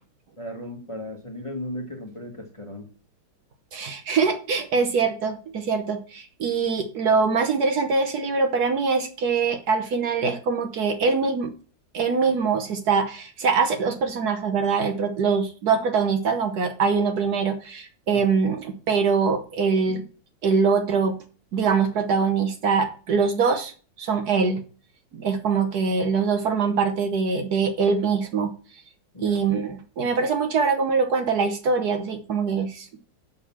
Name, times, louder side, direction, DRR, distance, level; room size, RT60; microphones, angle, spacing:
voice 1, 0.4-2.9 18.1-18.2 24.1-24.2 29.1-29.4 30.0-30.1, left 1 dB, 20° left, 2 dB, 1.2 m, -36 dB
voice 2, 3.7-11.5 11.9-20.0 20.4-21.1 21.5-23.7 24.0-24.6 25.1-28.5 29.2-32.9, right 5 dB, 60° right, 6 dB, 1.3 m, -23 dB
6.4 x 5.5 x 7.1 m, 0.39 s
omnidirectional pair, 2.0 m